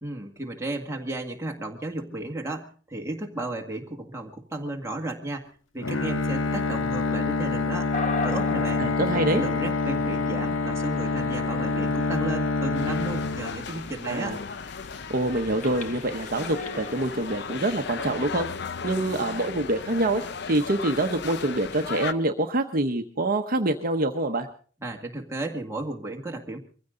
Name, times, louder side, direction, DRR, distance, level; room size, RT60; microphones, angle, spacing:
voice 1, 0.0-8.9 9.1-14.4 24.8-26.6, right 2 dB, 15° right, 1 dB, 2.0 m, -34 dB
Bowed string instrument, 5.8-14.0, left 3 dB, 80° left, 1.0 m, -27 dB
sound 1, 7.9-17.6, left 3 dB, 40° left, 1.5 m, -40 dB
voice 2, 8.8-9.4 14.1-14.4 15.1-24.5, right 2 dB, 45° right, 5 dB, 1.0 m, -26 dB
sound 2, 12.7-22.1, left 5 dB, 60° left, 0.7 m, -36 dB
23.0 x 15.5 x 3.9 m, 0.42 s
head